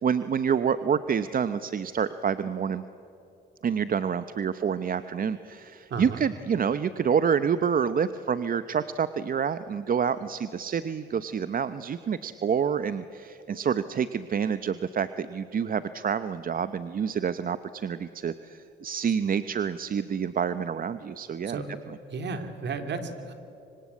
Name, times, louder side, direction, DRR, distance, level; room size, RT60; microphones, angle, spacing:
voice 1, 0.0-2.8 3.6-21.6 21.9-22.0, right 7 dB, 45° right, 12 dB, 0.9 m, -28 dB
voice 2, 5.9-6.2 21.5-21.7 22.1-23.3, right 4 dB, 60° right, 7 dB, 3.0 m, -33 dB
25.5 x 25.5 x 8.5 m, 2.8 s
cardioid pair, 90°, 20 cm